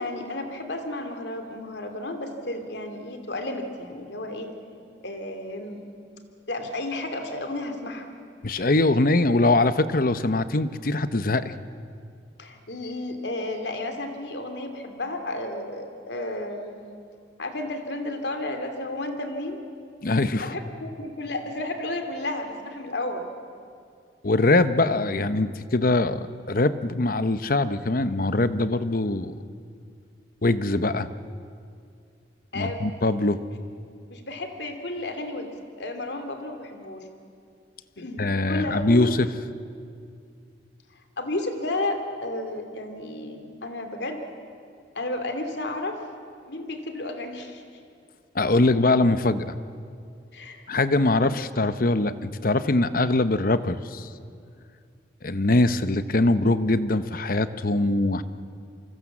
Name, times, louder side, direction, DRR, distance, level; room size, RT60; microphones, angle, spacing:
voice 1, 0.0-4.5 5.0-5.8 6.5-8.1 12.4-16.9 17.4-19.6 20.4-23.3 32.5-32.9 34.1-37.1 38.0-39.2 41.2-44.3 44.9-46.0 46.5-47.6 50.3-50.7, left 2 dB, 70° left, 6 dB, 2.8 m, -32 dB
voice 2, 8.4-11.5 20.0-20.6 24.2-29.4 30.4-31.1 32.5-33.4 38.2-39.3 48.3-49.6 50.7-54.1 55.2-58.2, left 2 dB, 50° left, 12 dB, 0.9 m, -22 dB
27.5 x 25.0 x 7.4 m, 2.3 s
head